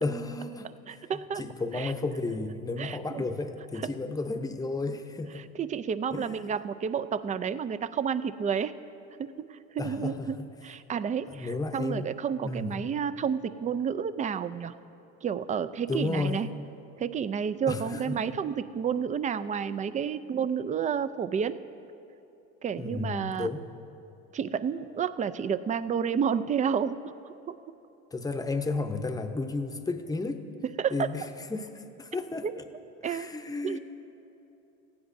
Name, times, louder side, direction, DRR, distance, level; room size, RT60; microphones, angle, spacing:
voice 1, 0.0-5.4 6.1-6.4 9.8-10.5 11.3-12.1 12.4-12.7 15.9-16.4 17.7-18.2 22.8-23.6 28.1-30.4 30.9-32.6 33.0-33.8, left 3 dB, 10° left, 7 dB, 0.7 m, -33 dB
voice 2, 0.9-1.4 1.7-1.9 2.8-3.2 5.6-8.7 9.2-10.4 10.6-14.7 15.2-16.5 17.0-21.6 22.6-23.5 24.3-27.1 27.5-27.6 30.8-31.1 32.4-32.5 33.0-33.3 33.6-33.8, right 7 dB, 25° right, 13 dB, 0.4 m, -30 dB
18.0 x 15.0 x 2.6 m, 2.9 s
supercardioid pair, 100°, 30 cm